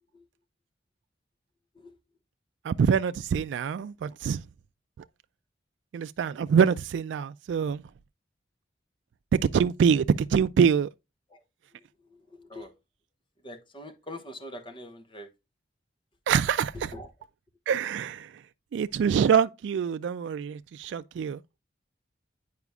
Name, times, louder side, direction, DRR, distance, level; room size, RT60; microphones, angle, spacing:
voice 1, 2.6-4.4 5.9-7.8 9.3-10.9 16.3-16.9 17.7-18.3 18.7-21.4, right 7 dB, 80° right, 0.3 m, -25 dB
voice 2, 12.1-12.7 13.4-15.3 16.9-17.1, left 1 dB, 30° left, 1.1 m, -43 dB
9.5 x 4.9 x 2.3 m
head